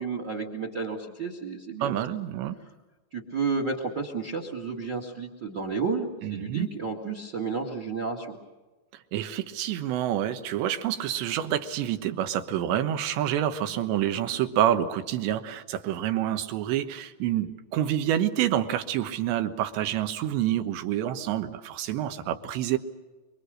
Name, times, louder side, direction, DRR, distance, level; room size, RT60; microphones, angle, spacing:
voice 1, 0.0-2.0 3.1-8.4, right 4 dB, 40° right, 3 dB, 1.6 m, -31 dB
voice 2, 1.8-2.6 6.2-6.7 9.1-22.8, right 11 dB, 80° right, 9 dB, 3.4 m, -28 dB
26.0 x 24.5 x 6.4 m, 1.2 s
omnidirectional pair, 5.1 m